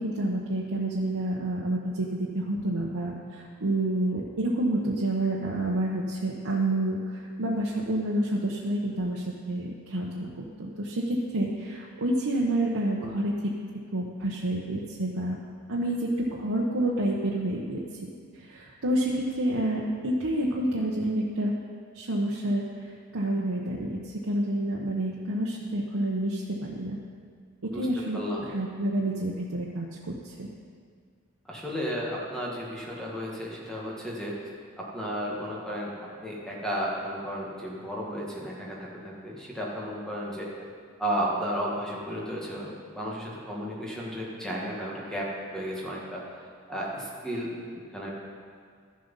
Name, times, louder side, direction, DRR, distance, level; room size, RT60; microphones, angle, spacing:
voice 1, 0.0-15.4 15.7-21.5 21.9-27.0 27.6-30.5, right 1 dB, 75° right, -3 dB, 1.0 m, -29 dB
voice 2, 31.4-34.4 34.8-35.9 36.2-40.5 41.0-46.2 46.7-48.1, equal, 5° left, -4 dB, 1.6 m, -33 dB
13.0 x 7.7 x 5.4 m, 2.1 s
head